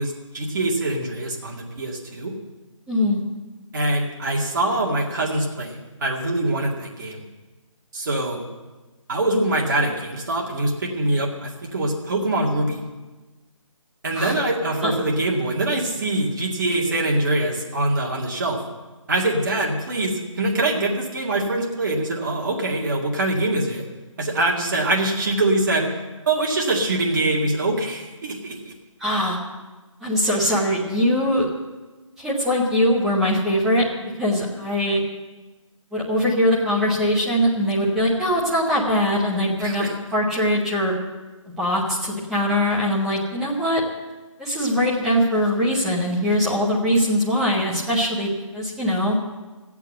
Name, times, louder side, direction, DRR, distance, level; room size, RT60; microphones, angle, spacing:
voice 1, 0.0-2.3 3.7-7.2 7.9-8.5 9.1-12.8 14.0-18.6 19.1-23.8 24.2-25.9 26.3-28.7 39.6-39.9, right 2 dB, 35° right, -1 dB, 2.1 m, -24 dB
voice 2, 2.9-3.2 14.1-14.3 14.8-14.9 29.0-29.4 30.0-31.4 32.2-33.8 34.2-35.0 35.9-39.8 40.1-40.9 41.6-43.8 44.4-49.2, equal, ahead, -6 dB, 0.9 m, -21 dB
14.0 x 8.3 x 7.7 m, 1.2 s
figure-of-eight pair, 170°, 17 cm